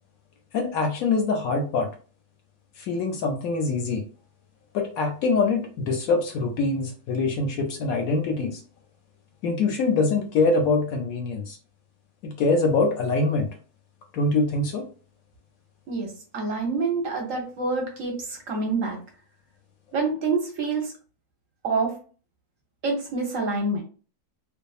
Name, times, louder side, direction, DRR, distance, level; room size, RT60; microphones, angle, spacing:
voice 1, 0.5-1.9 2.8-4.0 4.7-8.6 9.4-11.6 12.2-13.5 14.1-14.8, left 3 dB, 70° left, 5 dB, 0.9 m, -24 dB
voice 2, 15.9-19.0 19.9-20.9 21.6-21.9 22.8-23.8, right 3 dB, 65° right, 2 dB, 0.9 m, -27 dB
2.6 x 2.3 x 2.3 m, 0.38 s
omnidirectional pair, 1.7 m